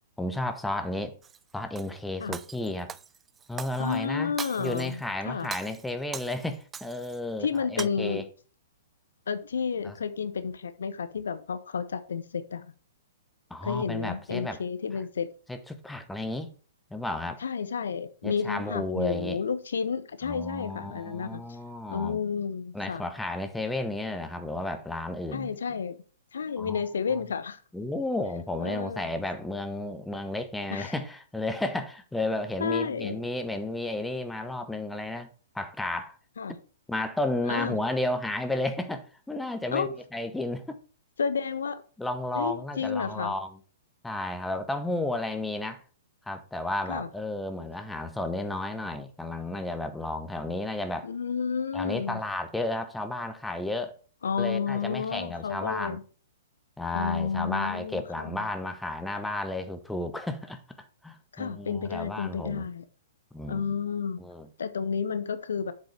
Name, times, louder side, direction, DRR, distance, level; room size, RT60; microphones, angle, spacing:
voice 1, 0.2-1.1 1.5-2.9 3.5-4.3 4.6-8.2 9.8-9.9 13.5-14.6 15.5-16.5 16.9-17.4 18.2-19.4 20.2-22.2 22.7-25.6 26.6-26.8 27.1-27.2 27.7-35.3 35.5-36.2 36.9-40.8 42.0-43.5 44.0-45.8 46.3-51.1 51.7-54.0 54.4-56.0 56.8-60.6 61.0-62.7 63.3-63.8 64.2-64.5, left 2 dB, 5° left, 0.9 m, -32 dB
Shatter, 1.2-1.9 2.3-4.0 4.4-5.0 5.4-7.2 7.5-7.9, right 7 dB, 15° right, 0.3 m, -41 dB
voice 2, 3.8-5.5 7.4-8.2 9.3-12.7 13.6-15.3 17.4-21.4 21.9-23.0 25.3-26.0 26.3-27.6 28.6-29.1 30.7-30.9 32.6-33.2 36.4-36.5 37.5-37.8 39.7-39.9 41.2-41.8 42.3-43.3 46.9-47.1 51.0-52.2 54.2-56.0 56.9-58.5 61.3-62.8 63.5-64.2 64.6-65.7, left 6 dB, 65° left, 0.9 m, -31 dB
7.6 x 7.4 x 3.4 m
figure-of-eight pair, 115°, 0 cm